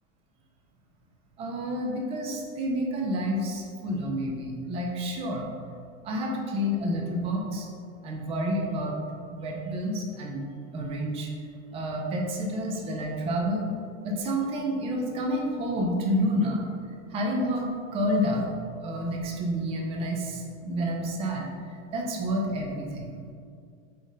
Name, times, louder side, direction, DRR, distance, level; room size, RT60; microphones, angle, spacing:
voice 1, 1.4-5.5 6.0-7.7 8.0-9.0 9.3-10.4 10.7-11.3 11.7-13.7 14.0-16.6 17.1-18.5 18.8-23.1, equal, 15° right, 0 dB, 0.4 m, -29 dB
4.1 x 3.5 x 3.6 m, 2.3 s
supercardioid pair, 135°, 39 cm